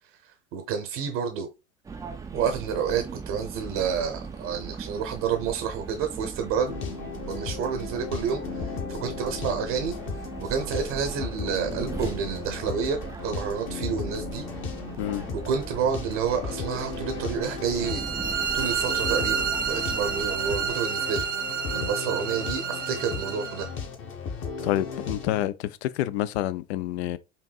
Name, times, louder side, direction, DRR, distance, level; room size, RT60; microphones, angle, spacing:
voice 1, 0.2-1.5 2.3-6.8 7.3-14.5 15.3-18.1 18.5-21.2 21.7-23.7, right 7 dB, 50° right, 0.8 m, -29 dB
sound 1, 1.8-20.8, right 5 dB, 10° right, 0.4 m, -39 dB
sound 2, 6.7-25.4, left 5 dB, 35° left, 0.9 m, -36 dB
sound 3, 17.8-23.7, right 7 dB, 90° right, 0.7 m, -29 dB
voice 2, 24.6-27.2, left 13 dB, 65° left, 0.5 m, -28 dB
5.2 x 2.6 x 2.3 m
hypercardioid pair, 85°, 36 cm